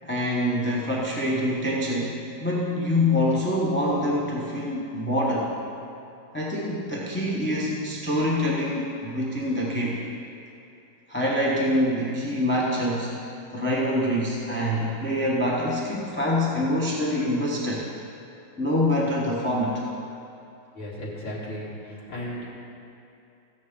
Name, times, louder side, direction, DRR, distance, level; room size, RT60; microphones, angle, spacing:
voice 1, 0.0-5.5 6.3-10.0 11.1-13.1 13.5-17.9 18.6-19.8, left 1 dB, 10° left, -5 dB, 0.6 m, -25 dB
voice 2, 20.8-22.5, equal, 90° left, -9 dB, 2.7 m, -35 dB
14.5 x 9.3 x 3.7 m, 2.6 s
omnidirectional pair, 2.0 m